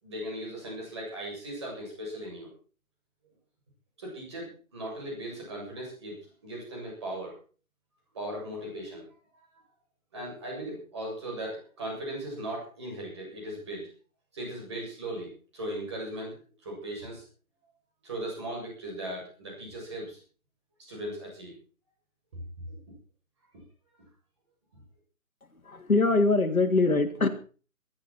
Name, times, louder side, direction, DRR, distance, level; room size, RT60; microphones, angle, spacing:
voice 1, 0.0-2.5 4.0-7.3 8.1-9.1 9.3-9.4 10.1-13.9 14.3-16.4 16.6-17.2 18.0-20.2 20.9-21.5 22.7-22.8 24.7-24.8, right 1 dB, 20° right, -2 dB, 7.7 m, -38 dB
voice 2, 25.6-27.3, left 3 dB, 75° left, 6 dB, 3.1 m, -23 dB
19.5 x 13.0 x 4.5 m, 0.39 s
figure-of-eight pair, 175°, 42 cm